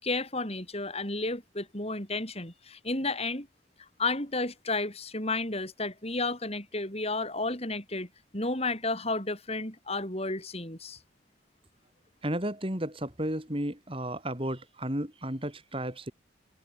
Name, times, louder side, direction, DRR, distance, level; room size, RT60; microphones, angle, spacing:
voice 1, 0.0-3.5 4.0-8.1 8.3-11.0, left 2 dB, 30° left, 6.9 m, -32 dB
voice 2, 12.2-16.1, right 1 dB, 25° right, 4.3 m, -33 dB
head